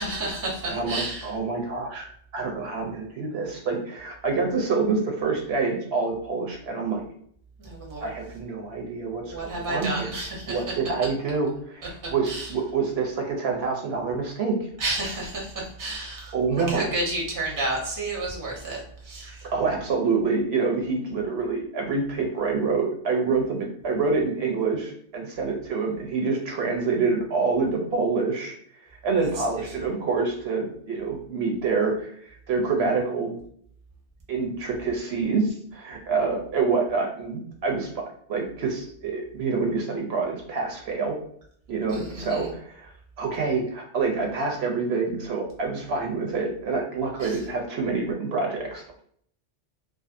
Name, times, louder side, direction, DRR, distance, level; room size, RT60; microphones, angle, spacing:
voice 1, 0.0-1.3 7.6-8.1 9.3-10.7 12.3-12.5 14.8-19.4 41.9-42.5 47.2-47.4, right 2 dB, 20° right, -2 dB, 0.6 m, -31 dB
voice 2, 0.7-2.1 2.3-7.0 8.0-10.1 10.5-14.6 16.3-16.9 19.5-28.5 29.0-33.4 34.3-37.9 38.3-41.1 41.7-42.9 43.2-48.8, right 4 dB, 70° right, 1 dB, 0.8 m, -27 dB
2.5 x 2.4 x 2.4 m, 0.63 s
omnidirectional pair, 1.2 m